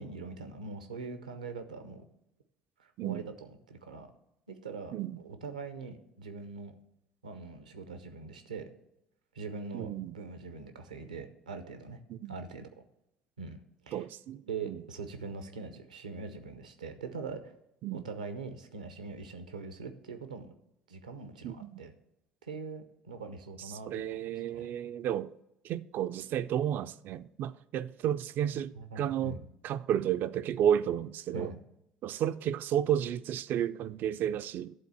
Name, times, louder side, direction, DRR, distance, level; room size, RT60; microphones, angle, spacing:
voice 1, 0.0-2.0 2.8-4.1 4.5-4.9 5.2-6.7 7.2-8.7 9.3-12.0 12.3-12.7 13.4-13.6 13.8-14.1 14.5-17.5 17.9-20.5 20.9-21.9 22.4-24.2 24.5-24.7 28.7-29.4 31.3-31.6, right 4 dB, 90° right, 0.7 m, -42 dB
voice 2, 9.7-10.2 12.1-12.4 13.9-14.8 17.8-18.1 21.4-21.8 23.9-25.3 25.6-29.4 29.6-31.5 32.0-34.7, right 10 dB, 55° right, 0.4 m, -32 dB
11.0 x 3.9 x 6.8 m
hypercardioid pair, 60°, 4 cm